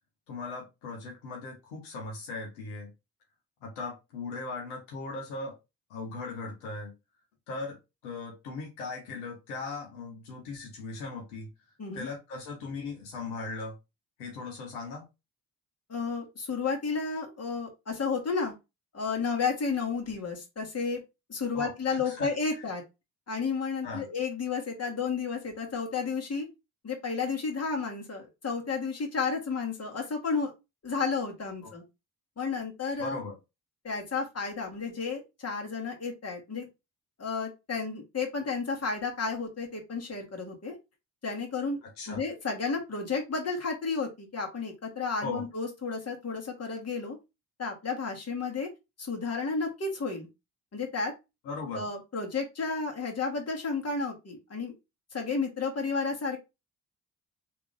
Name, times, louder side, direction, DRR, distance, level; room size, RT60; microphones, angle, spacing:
voice 1, 0.3-2.9 3.6-5.6 5.9-6.9 7.5-7.8 8.0-11.5 11.9-13.7 14.2-15.0 21.5-22.7 23.8-24.1 33.0-33.4 41.8-42.2 45.2-45.5 51.4-51.8, left 3 dB, 85° left, 0 dB, 1.1 m, -38 dB
voice 2, 15.9-18.5 18.9-21.0 21.3-22.8 23.3-26.5 26.8-30.5 30.8-31.8 32.4-33.2 33.8-36.7 37.2-40.7 41.2-41.8 42.1-47.2 47.6-48.7 49.0-50.3 50.7-51.1 51.7-54.7 55.1-56.4, left 4 dB, 35° left, 1 dB, 1.7 m, -32 dB
3.3 x 2.9 x 3.4 m, 0.24 s
hypercardioid pair, 45°, 42 cm